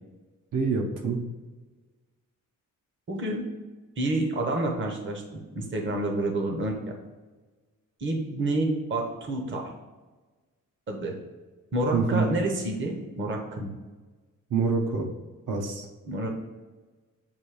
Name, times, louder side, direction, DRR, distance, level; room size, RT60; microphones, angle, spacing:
voice 1, 0.5-1.2 11.9-12.2 14.5-15.1 15.5-15.9, right 5 dB, 70° right, 1 dB, 1.0 m, -26 dB
voice 2, 3.1-3.5 4.0-6.9 8.0-9.7 10.9-11.2 11.7-13.7 16.1-16.3, right 2 dB, 40° right, 1 dB, 0.9 m, -29 dB
7.4 x 2.7 x 4.8 m, 1.3 s
wide cardioid pair, 165°, 32 cm